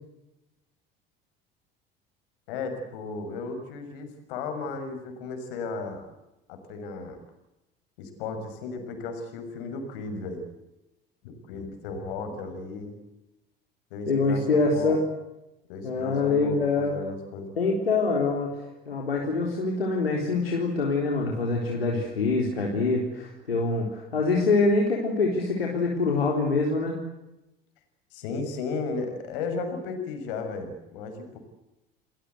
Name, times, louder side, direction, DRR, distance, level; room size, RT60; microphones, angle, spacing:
voice 1, 2.5-6.1 6.5-7.2 8.0-10.5 11.2-13.0 13.9-14.9 15.7-17.5 28.1-31.4, left 4 dB, 65° left, 7 dB, 6.4 m, -35 dB
voice 2, 14.1-15.1 15.8-16.9 17.5-27.0, left 3 dB, 85° left, 0 dB, 3.9 m, -25 dB
30.0 x 20.5 x 8.2 m, 0.93 s
figure-of-eight pair, 65°, 29 cm